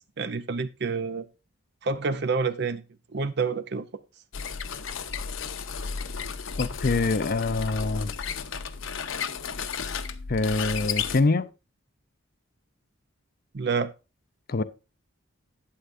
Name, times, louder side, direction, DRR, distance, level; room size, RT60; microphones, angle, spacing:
voice 1, 0.2-1.3 1.8-2.8 3.1-3.9 13.5-13.9, right 4 dB, 50° right, 0.6 m, -28 dB
sound 1, 4.3-11.2, left 6 dB, 70° left, 0.8 m, -33 dB
voice 2, 6.6-8.1 10.3-11.5 14.5-14.6, left 3 dB, 45° left, 0.5 m, -25 dB
11.5 x 8.9 x 2.6 m
head